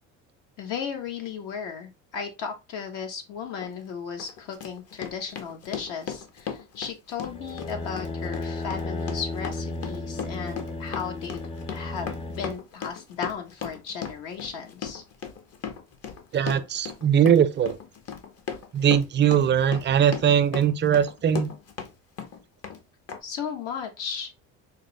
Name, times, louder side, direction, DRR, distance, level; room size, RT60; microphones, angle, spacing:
voice 1, 0.6-15.0 23.2-24.3, left 6 dB, 75° left, 1.1 m, -35 dB
Run, 3.6-3.7 4.2-21.9 22.2-22.8 23.1-23.2, left 7 dB, 50° left, 0.8 m, -37 dB
sound 1, 7.3-12.6, left 2 dB, 15° left, 0.5 m, -34 dB
voice 2, 16.3-17.8 18.7-21.5, right 9 dB, 35° right, 0.5 m, -21 dB
4.1 x 2.0 x 3.1 m
supercardioid pair, 95°, 33 cm